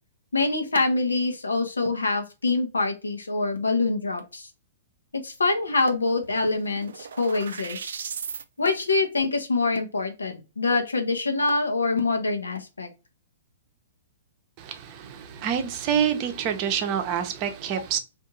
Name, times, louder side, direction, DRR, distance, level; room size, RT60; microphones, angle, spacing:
voice 1, 0.3-4.5 5.1-7.9 8.6-12.9, left 3 dB, 85° left, 0.7 m, -25 dB
sound 1, 5.6-5.7 5.9-8.4, right 7 dB, 70° right, 0.3 m, -37 dB
voice 2, 14.6-18.0, right 8 dB, 40° right, 0.7 m, -27 dB
2.7 x 2.6 x 3.7 m
figure-of-eight pair, 115°, 0 cm